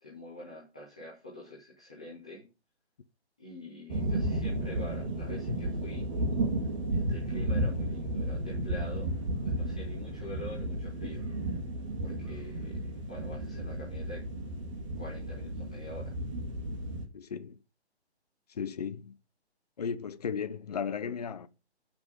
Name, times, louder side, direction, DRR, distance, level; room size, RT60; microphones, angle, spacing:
voice 1, 0.0-2.4 3.4-6.1 6.9-9.1 9.4-11.2 12.0-12.8 13.1-14.2 14.9-16.1, left 1 dB, 5° left, 0.5 m, -45 dB
sound 1, 3.9-17.0, right 1 dB, 30° right, 2.0 m, -33 dB
voice 2, 17.1-17.6 18.5-19.2 19.8-21.5, left 6 dB, 35° left, 0.7 m, -35 dB
9.4 x 6.1 x 5.1 m
hypercardioid pair, 165°, 33 cm